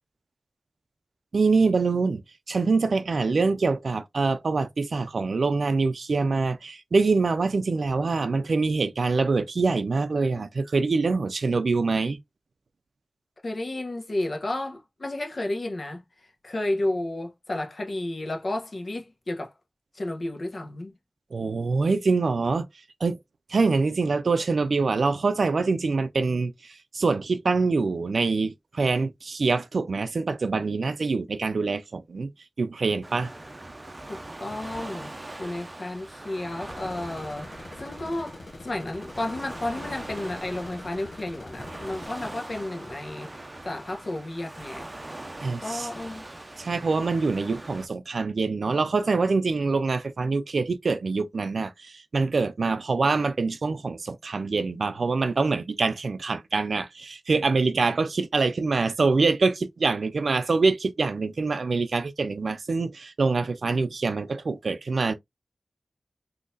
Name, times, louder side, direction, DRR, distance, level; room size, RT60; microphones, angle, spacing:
voice 1, 1.3-2.2 2.5-12.2 21.3-22.7 23.0-23.2 23.5-32.3 32.6-33.3 45.4-45.9 46.6-65.1, right 4 dB, 80° right, 0.5 m, -25 dB
voice 2, 13.4-16.0 16.4-19.5 19.9-20.9 34.1-35.1 35.4-37.5 37.8-38.4 38.6-43.3 43.6-44.9 45.6-46.3, left 1 dB, 60° left, 1.1 m, -32 dB
Waves surf, 33.0-47.9, right 1 dB, 30° right, 0.6 m, -42 dB
sound 1, 36.7-42.1, left 2 dB, 75° left, 0.8 m, -44 dB
3.8 x 2.9 x 2.5 m
wide cardioid pair, 70°, 0 cm